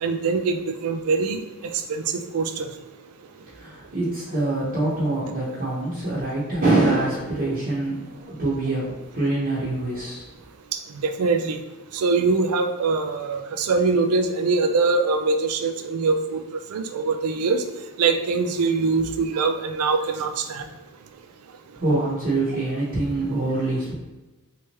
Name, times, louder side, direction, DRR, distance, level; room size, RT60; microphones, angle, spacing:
voice 1, 0.0-1.4 1.7-2.7 11.0-11.6 11.9-16.4 16.7-17.6 18.0-20.7, right 4 dB, 75° right, 6 dB, 0.4 m, -23 dB
voice 2, 3.5-10.2 21.7-23.9, right 2 dB, 40° right, -9 dB, 0.9 m, -25 dB
3.4 x 3.0 x 2.9 m, 1.1 s
head